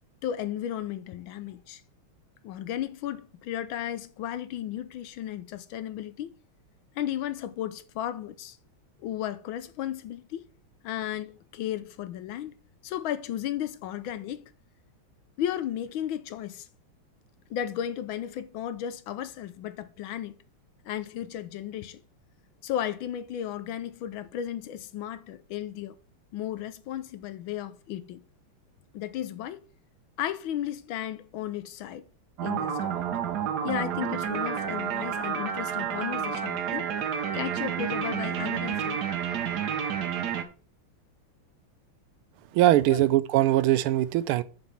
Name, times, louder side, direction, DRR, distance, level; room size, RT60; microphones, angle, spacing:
voice 1, 0.2-1.8 2.4-6.4 6.9-8.6 9.0-10.5 10.8-12.5 12.8-14.5 15.4-16.7 17.5-20.4 20.8-22.0 22.6-26.0 26.3-28.2 28.9-29.7 30.2-32.0 32.4-33.1 33.6-36.9 37.3-39.0 42.9-43.1, left 11 dB, 75° left, 1.4 m, -34 dB
sound 1, 32.4-40.4, right 8 dB, 60° right, 1.2 m, -30 dB
voice 2, 42.5-44.4, right 14 dB, 85° right, 1.5 m, -21 dB
7.1 x 5.3 x 5.7 m
omnidirectional pair, 2.4 m